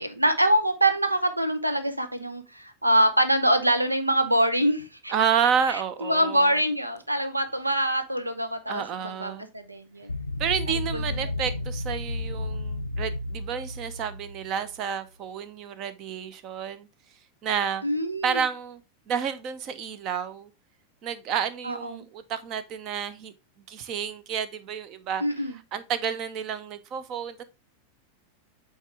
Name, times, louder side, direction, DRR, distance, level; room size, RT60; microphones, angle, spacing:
voice 1, 0.0-5.1 5.7-10.1 10.7-11.5 17.8-18.4 21.6-22.1 25.2-25.6, right 1 dB, 85° right, 0.8 m, -25 dB
voice 2, 5.1-6.6 8.7-9.5 10.4-16.9 17.4-17.8 18.2-18.8 19.1-20.5 21.0-23.3 23.7-27.4, right 7 dB, 35° right, 0.8 m, -30 dB
sound 1, 10.1-14.8, left 2 dB, 80° left, 0.5 m, -32 dB
8.4 x 3.5 x 3.3 m
figure-of-eight pair, 90°, 0 cm